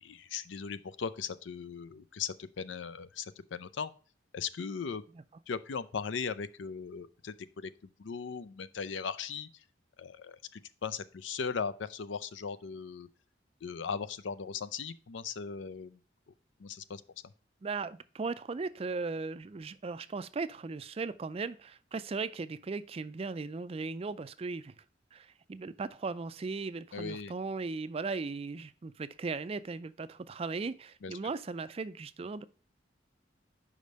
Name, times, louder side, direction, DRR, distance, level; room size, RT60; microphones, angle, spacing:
voice 1, 0.0-3.9 4.3-5.0 5.5-9.5 10.0-13.1 13.6-16.0 16.6-17.0 26.9-27.3 31.0-31.1, left 6 dB, 75° left, 0.5 m, -38 dB
voice 2, 17.6-24.7 25.1-32.5, right 4 dB, 30° right, 0.4 m, -37 dB
5.3 x 5.0 x 6.4 m
head